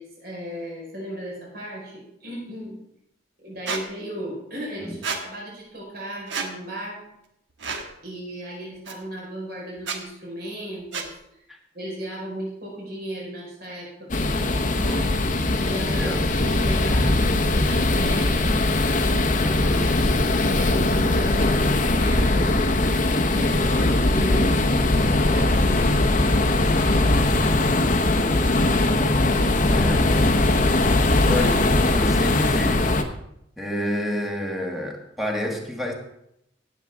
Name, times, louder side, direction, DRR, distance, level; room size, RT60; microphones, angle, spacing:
voice 1, 0.0-2.8 3.4-7.0 8.0-11.1 11.7-15.1 15.6-18.4 20.5-22.4 23.2-24.6 25.2-28.4 29.4-30.1, right 1 dB, 55° right, -4 dB, 4.9 m, -36 dB
Squeak, 3.7-3.8 5.0-5.2 6.3-6.5 7.6-7.9 8.9-9.0 9.8-10.0 10.9-11.1, right 5 dB, 70° right, 1.3 m, -29 dB
sound 1, 14.1-33.0, left 2 dB, 40° left, 0.9 m, -20 dB
voice 2, 19.4-19.9 29.7-30.2 31.2-32.9 33.6-35.9, left 1 dB, ahead, 1 dB, 1.4 m, -29 dB
17.0 x 7.5 x 3.6 m, 0.80 s
head